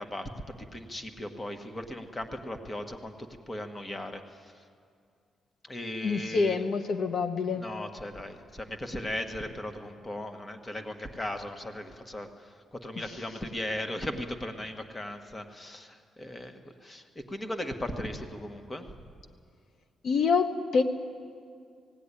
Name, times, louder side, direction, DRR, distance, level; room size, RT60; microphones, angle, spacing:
voice 1, 0.0-4.6 5.6-6.6 7.5-18.9, left 1 dB, 20° left, 6 dB, 1.5 m, -38 dB
voice 2, 6.0-7.6 20.0-20.8, left 5 dB, 65° left, 7 dB, 1.0 m, -26 dB
18.0 x 17.0 x 9.9 m, 2.2 s
cardioid pair, 110°, 0 cm